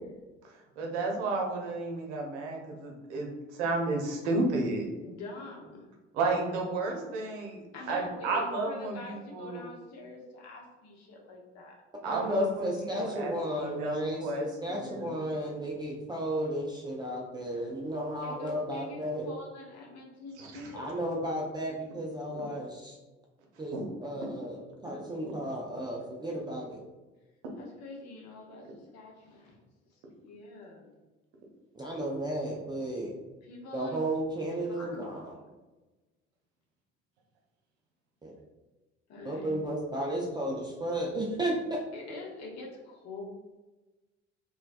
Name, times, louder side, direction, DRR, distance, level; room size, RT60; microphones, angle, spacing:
voice 1, 0.4-4.9 6.1-9.6 12.0-12.7 13.0-15.2 20.4-20.7 23.7-23.8 24.8-24.9, right 2 dB, 70° right, 0 dB, 0.7 m, -32 dB
voice 2, 5.0-5.8 7.7-11.8 18.2-21.0 27.5-29.6 29.9-31.0 33.4-34.0 34.7-35.1 39.1-39.7 41.9-43.2, left 2 dB, 45° left, -2 dB, 0.9 m, -45 dB
voice 3, 12.1-19.3 20.7-23.0 23.6-23.7 24.0-26.8 31.7-33.1 33.7-35.3 38.2-38.3 39.2-41.8, right 1 dB, 10° right, -3 dB, 0.4 m, -33 dB
3.1 x 2.2 x 2.5 m, 1.1 s
figure-of-eight pair, 55°, 35 cm